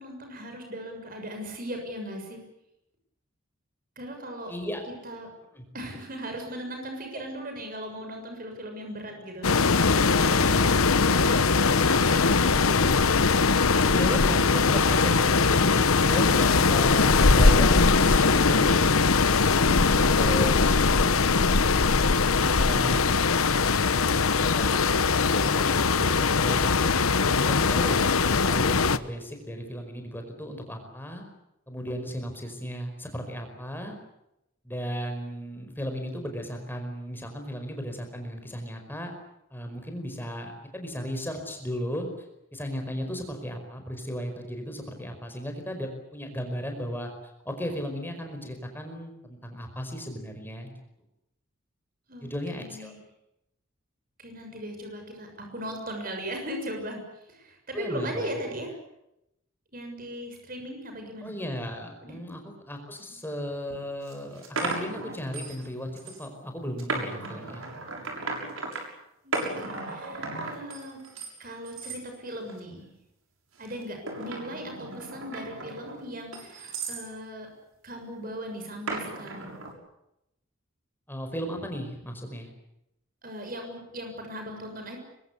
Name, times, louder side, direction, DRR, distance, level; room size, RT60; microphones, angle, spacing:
voice 1, 0.0-2.4 3.9-4.5 5.0-5.3 5.7-10.6 11.0-13.0 16.1-16.6 22.4-23.0 52.1-53.0 54.2-57.0 57.3-58.7 59.7-61.3 62.0-62.2 63.1-63.2 69.2-71.0 71.4-72.9 73.6-77.5 77.8-79.5 83.2-85.0, equal, 40° right, 3 dB, 6.8 m, -38 dB
voice 2, 4.5-4.8 5.5-5.6 7.1-7.2 13.8-18.9 19.6-21.5 22.5-23.3 24.3-24.8 25.1-26.9 27.2-31.2 31.7-34.0 34.6-39.1 39.5-42.1 42.5-47.1 47.4-50.7 52.2-52.9 57.7-58.3 61.2-62.4 62.7-67.6 81.1-82.5, equal, 10° left, 4 dB, 5.0 m, -35 dB
sound 1, 9.4-29.0, left 4 dB, 90° left, 1.1 m, -21 dB
sound 2, 63.5-63.6 64.1-65.7 66.0-66.3 66.8-68.8 69.3-71.3 71.7-72.0 72.5-72.9 73.6-77.1 78.9-79.7, right 3 dB, 80° right, 6.9 m, -35 dB
25.0 x 23.0 x 8.4 m, 0.85 s
head